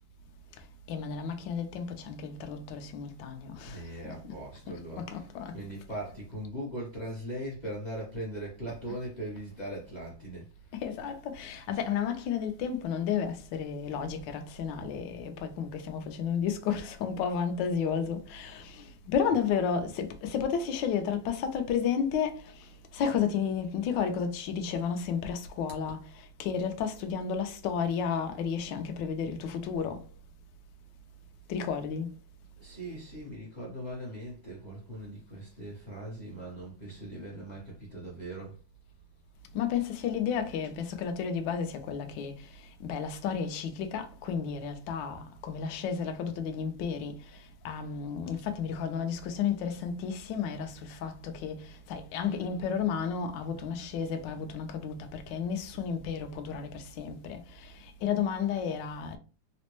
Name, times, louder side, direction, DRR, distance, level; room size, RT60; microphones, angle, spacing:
voice 1, 0.9-3.8 5.0-5.5 10.7-22.5 22.9-26.0 26.4-30.0 31.5-32.1 39.5-42.3 42.8-47.2 47.6-59.2, left 7 dB, 70° left, 1.2 m, -32 dB
voice 2, 3.7-5.1 5.5-10.5 32.6-38.5, right 1 dB, 40° left, 0.6 m, -40 dB
4.1 x 2.0 x 3.0 m
omnidirectional pair, 2.2 m